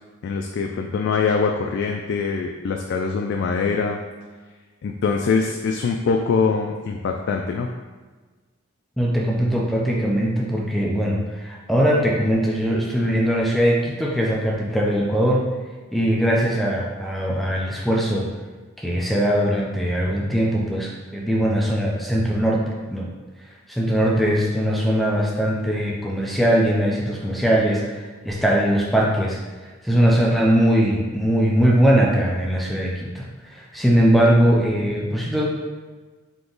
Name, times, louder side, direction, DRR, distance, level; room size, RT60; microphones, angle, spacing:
voice 1, 0.2-4.0 4.8-7.7, left 5 dB, 60° left, 2 dB, 0.3 m, -23 dB
voice 2, 9.0-15.5 15.9-18.3 18.8-22.6 22.9-23.1 23.7-29.4 29.8-35.5, equal, ahead, -3 dB, 0.5 m, -20 dB
3.7 x 2.9 x 3.9 m, 1.3 s
head